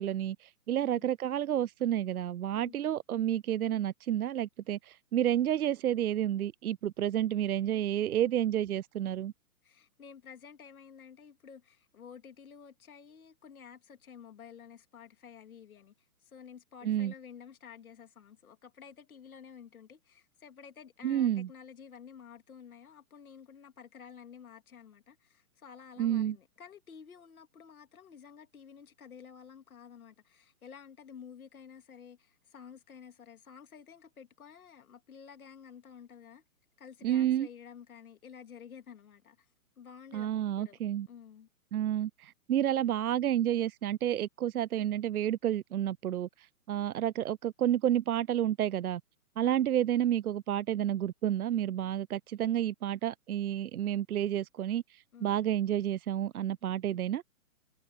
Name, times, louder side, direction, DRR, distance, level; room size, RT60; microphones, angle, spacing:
voice 1, 0.0-9.3 16.8-17.1 21.0-21.5 26.0-26.4 37.0-37.5 40.1-41.1 41.7-49.0 49.4-57.2, right 11 dB, 75° right, 0.7 m, -30 dB
voice 2, 9.6-15.9 16.2-36.4 36.8-39.5 39.8-40.8 41.1-41.5 49.4-49.7 55.1-55.4, left 7 dB, 70° left, 3.0 m, -51 dB
hypercardioid pair, 160°, 44 cm